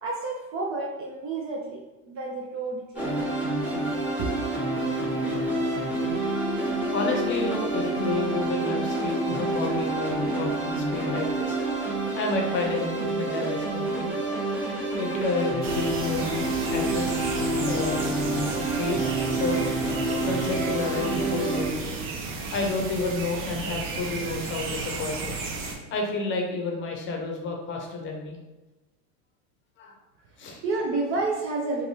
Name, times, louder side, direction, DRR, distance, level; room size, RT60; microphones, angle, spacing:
voice 1, 0.0-3.1 4.2-4.6 30.6-31.9, right 3 dB, 30° right, -2 dB, 0.4 m, -30 dB
sound 1, 2.9-21.6, right 2 dB, 5° right, 0.9 m, -28 dB
voice 2, 6.9-11.6 12.1-14.1 15.0-18.1 18.8-19.7 20.2-25.3 25.9-28.4 29.8-29.9 30.4-30.6, left 3 dB, 30° left, 1 dB, 0.7 m, -31 dB
sound 2, 15.6-25.8, right 4 dB, 60° right, 0.7 m, -34 dB
3.3 x 2.2 x 2.7 m, 1.1 s
supercardioid pair, 120°, 40 cm